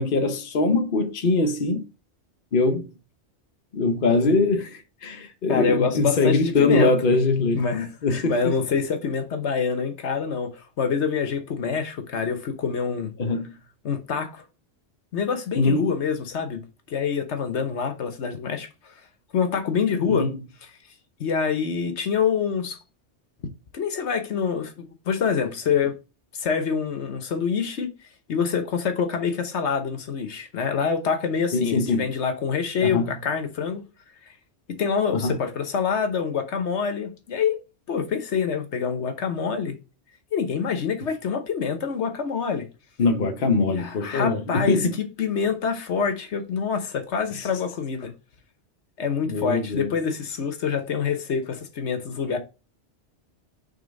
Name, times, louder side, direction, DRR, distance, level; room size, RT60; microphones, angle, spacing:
voice 1, 0.0-1.9 2.5-2.9 3.7-7.6 8.0-8.5 13.2-13.5 15.6-15.9 20.1-20.4 31.5-32.1 32.8-33.2 35.1-35.4 43.0-44.9 47.3-47.5 49.3-49.9, left 3 dB, 50° left, 1.0 m, -22 dB
voice 2, 5.5-6.9 7.5-13.1 13.8-14.4 15.1-18.9 19.3-20.3 21.2-22.8 23.7-26.0 26.4-27.9 28.3-33.9 34.8-37.6 37.9-39.8 40.3-42.7 43.6-48.1 49.0-52.4, left 6 dB, 70° left, 1.3 m, -26 dB
5.4 x 3.4 x 5.1 m
omnidirectional pair, 1.2 m